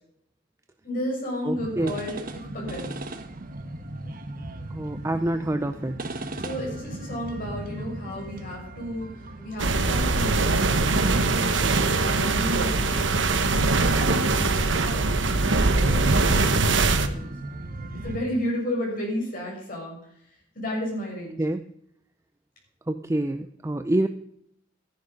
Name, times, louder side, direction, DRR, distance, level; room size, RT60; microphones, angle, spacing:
voice 1, 0.8-2.9 6.4-9.1 9.4-11.6 11.9-17.3 18.0-20.0 20.5-21.4, equal, 50° left, -2 dB, 6.8 m, -33 dB
voice 2, 1.4-2.0 4.7-6.0 21.4-21.6 22.9-24.1, right 1 dB, 15° right, 8 dB, 0.5 m, -27 dB
sound 1, 1.6-18.2, right 1 dB, 50° right, 1.2 m, -38 dB
sound 2, 9.6-17.1, right 3 dB, 70° right, 1.1 m, -22 dB
14.5 x 10.5 x 5.3 m, 0.71 s
head